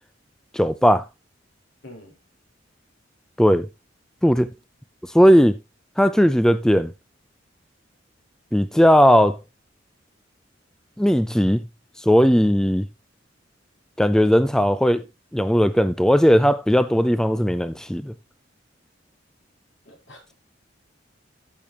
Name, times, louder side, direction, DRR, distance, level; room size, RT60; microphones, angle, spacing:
voice 1, 0.5-1.0 3.4-3.7 4.2-4.5 5.1-5.6 6.0-6.9 8.5-9.4 11.0-11.6 12.0-12.9 14.0-15.0 15.3-18.1, equal, 5° left, 0.4 m, -17 dB
voice 2, 1.8-2.2 19.9-20.3, left 1 dB, 75° left, 5.4 m, -45 dB
13.5 x 7.0 x 2.9 m
head